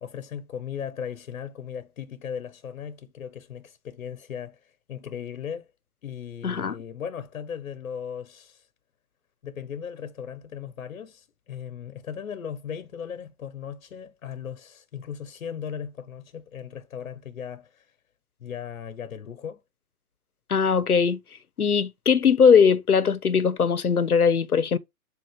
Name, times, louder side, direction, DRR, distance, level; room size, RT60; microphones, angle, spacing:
voice 1, 0.0-5.7 6.0-8.7 9.4-17.9 18.4-19.6, left 8 dB, 65° left, 1.1 m, -37 dB
voice 2, 6.4-6.7 20.5-21.2 21.6-24.8, left 6 dB, 80° left, 1.0 m, -20 dB
7.7 x 2.8 x 5.1 m
figure-of-eight pair, 120°, 44 cm